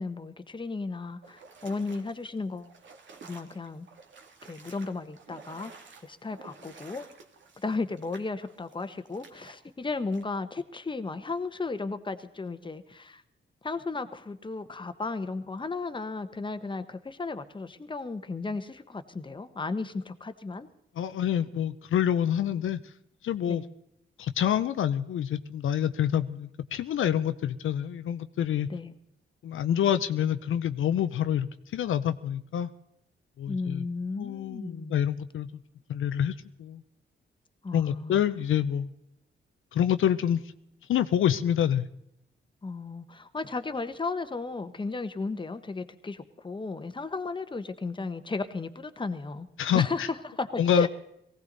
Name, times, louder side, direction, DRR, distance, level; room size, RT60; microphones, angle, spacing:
voice 1, 0.0-2.7 3.3-3.9 4.4-5.7 6.0-7.1 7.6-13.2 13.6-20.7 23.5-23.7 28.7-28.9 33.5-35.0 37.6-38.2 42.6-49.5 49.7-50.9, left 3 dB, 25° left, 10 dB, 1.0 m, -34 dB
sound 1, 1.2-9.6 10.1-10.2, right 4 dB, 65° right, 1.9 m, -52 dB
voice 2, 21.0-22.8 23.2-23.6 24.2-28.7 29.4-32.7 33.4-33.9 34.1-35.5 35.9-36.8 37.7-38.9 39.7-40.4 40.9-41.9 49.6-50.1 50.6-50.9, left 9 dB, 80° left, 11 dB, 0.6 m, -27 dB
19.0 x 16.0 x 4.0 m, 0.77 s
cardioid pair, 85°, 21 cm